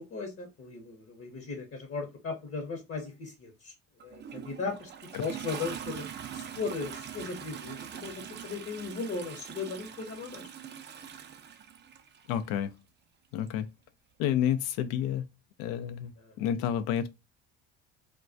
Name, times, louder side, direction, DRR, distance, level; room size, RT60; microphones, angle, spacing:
voice 1, 0.0-3.7 4.0-4.9 5.2-6.0 6.3-10.5 16.2-16.3, left 4 dB, 35° left, 0.8 m, -37 dB
Toilet flush, 4.0-12.4 13.5-13.6, right 8 dB, 30° right, 0.4 m, -43 dB
voice 2, 12.3-12.7 13.3-13.7 14.2-15.3 15.6-17.1, left 10 dB, 75° left, 0.5 m, -30 dB
2.2 x 2.2 x 2.5 m
supercardioid pair, 75°, 37 cm